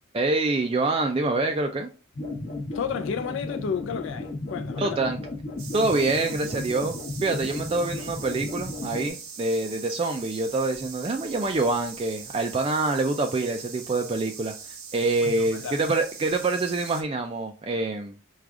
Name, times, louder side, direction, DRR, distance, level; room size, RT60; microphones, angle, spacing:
voice 1, 0.1-1.9 4.8-5.2 5.7-7.0 7.2-14.5 14.9-18.2, right 2 dB, 25° right, 0.3 m, -26 dB
sound 1, 2.1-9.1, left 2 dB, 35° left, 0.7 m, -35 dB
voice 2, 2.7-5.0 15.2-15.8, left 6 dB, 60° left, 0.4 m, -31 dB
sound 2, 5.6-17.0, right 6 dB, 90° right, 1.1 m, -42 dB
4.7 x 2.4 x 3.6 m
head